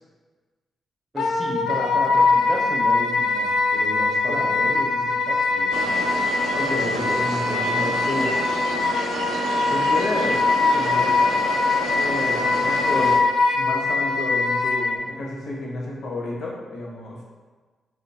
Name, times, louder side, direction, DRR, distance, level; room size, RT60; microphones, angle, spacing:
voice 1, 1.1-6.1, right 1 dB, 10° right, -3 dB, 0.5 m, -33 dB
Wind instrument woodwind instrument, 1.2-14.9, left 4 dB, 80° left, 0.3 m, -22 dB
sound 1, 5.7-13.2, right 3 dB, 85° right, 0.3 m, -30 dB
voice 2, 6.5-8.3 9.7-10.4 10.7-11.2 11.9-13.1 13.5-17.2, left 2 dB, 65° left, -3 dB, 0.7 m, -30 dB
2.8 x 2.2 x 3.9 m, 1.3 s
wide cardioid pair, 175°, 0 cm